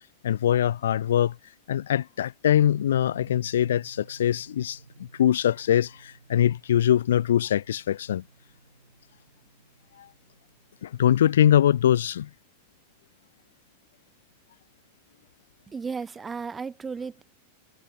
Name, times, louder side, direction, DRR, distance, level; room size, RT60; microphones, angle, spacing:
voice 1, 0.2-1.3 1.7-8.2 10.0-10.1 10.8-12.3, left 10 dB, 60° left, 0.4 m, -23 dB
sound 1, 2.5-11.5, right 4 dB, 75° right, 4.2 m, -54 dB
voice 2, 15.7-17.2, right 5 dB, 15° right, 0.5 m, -34 dB
figure-of-eight pair, 90°, 0 cm